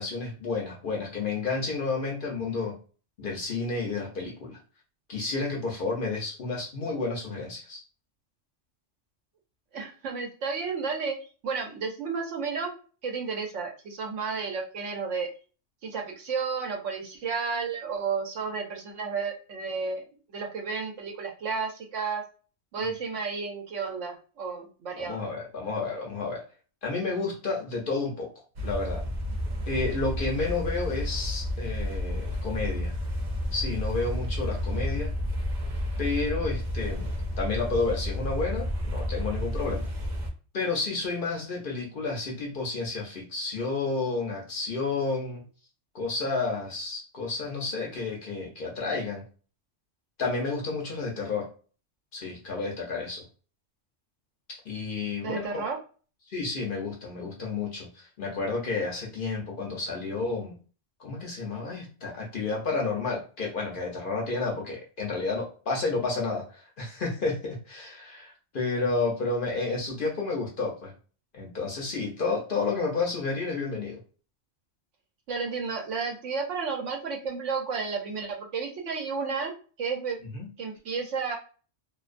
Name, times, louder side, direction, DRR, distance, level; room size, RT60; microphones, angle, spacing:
voice 1, 0.0-2.8 3.2-4.6 5.1-7.8 25.0-26.4 26.8-28.3 28.6-29.0 29.7-32.9 33.5-35.1 36.0-37.1 37.4-39.9 40.5-45.4 45.9-49.2 50.2-51.5 52.1-53.2 54.5-55.7 56.3-60.5 61.0-70.9 71.3-74.0 80.3-80.5, left 3 dB, 55° left, -1 dB, 0.7 m, -31 dB
voice 2, 9.7-11.2 11.4-12.7 13.0-15.3 15.8-22.2 22.7-25.2 55.2-55.8 75.3-79.5 79.8-80.2 80.6-81.4, right 5 dB, 80° right, 1 dB, 1.0 m, -32 dB
sound 1, 28.6-40.3, left 1 dB, 55° right, 0.5 m, -31 dB
2.5 x 2.2 x 2.4 m, 0.37 s
omnidirectional pair, 1.2 m